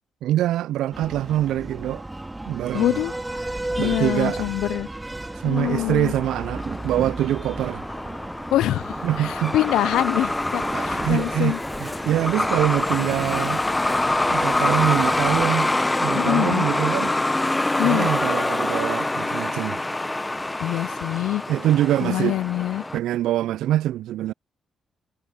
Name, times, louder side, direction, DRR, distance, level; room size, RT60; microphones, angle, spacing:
voice 1, 0.2-2.0 2.5-3.0 3.8-4.5 5.4-7.8 9.0-9.5 10.7-13.6 14.3-15.7 16.0-17.2 17.8-19.8 21.5-22.4 22.9-24.3, right 13 dB, 80° right, 0.3 m, -24 dB
Breathing, 0.9-15.5, right 2 dB, 15° right, 2.7 m, -35 dB
voice 2, 2.7-3.1 3.8-4.9 5.4-6.1 8.5-11.6 16.1-16.7 17.8-18.1 20.6-21.4 22.0-22.9, left 14 dB, 80° left, 0.3 m, -24 dB
Thunder, 5.1-18.7 20.3-20.6, right 5 dB, 45° right, 2.9 m, -43 dB
Truck, 5.6-23.0, left 2 dB, 20° left, 0.7 m, -25 dB
hypercardioid pair, 45°, 0 cm